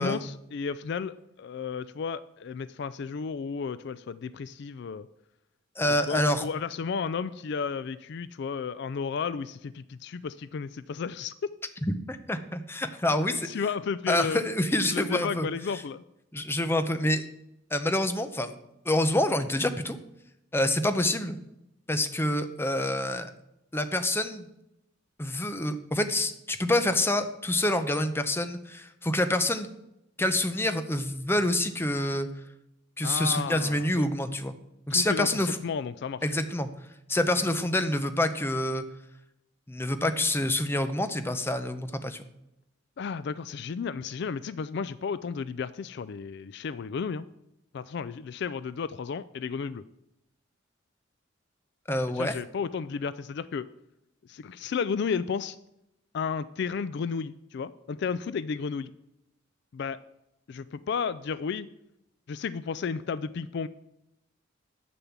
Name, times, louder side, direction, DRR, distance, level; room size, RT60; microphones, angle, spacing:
voice 1, 0.0-5.1 5.9-11.5 13.5-14.4 14.9-16.0 33.0-34.1 34.9-36.2 37.2-37.3 43.0-47.3 47.7-49.9 52.1-53.7 54.2-55.6 56.1-58.9 59.7-60.0 60.5-61.7 62.3-63.7, left 5 dB, 55° left, 16 dB, 0.3 m, -33 dB
voice 2, 5.8-6.5 11.9-13.5 14.1-15.5 16.3-17.2 17.7-18.5 18.8-20.0 20.5-21.4 21.9-23.3 23.7-24.5 25.2-29.7 30.2-32.3 33.0-34.5 34.9-35.6 36.2-36.7 37.1-38.8 39.7-42.3 51.9-52.3, left 1 dB, 10° left, 9 dB, 0.7 m, -27 dB
9.4 x 6.9 x 7.2 m, 0.85 s
head